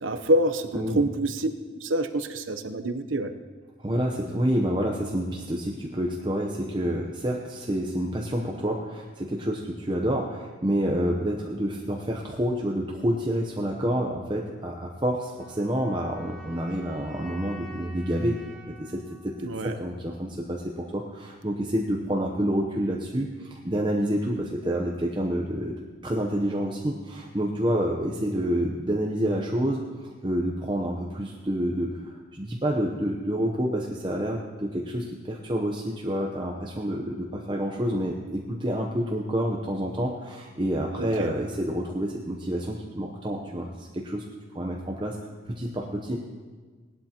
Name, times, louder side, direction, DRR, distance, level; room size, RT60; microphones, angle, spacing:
voice 1, 0.0-1.5 1.7-3.3 19.4-19.7 41.0-41.3, right 1 dB, 85° right, 9 dB, 0.8 m, -26 dB
voice 2, 3.8-18.4 18.8-44.2 44.5-45.2 45.4-46.2, equal, 25° right, 0 dB, 0.8 m, -28 dB
sound 1, 15.3-20.4, right 1 dB, ahead, 1.3 m, -47 dB
18.5 x 12.0 x 2.9 m, 1.4 s
head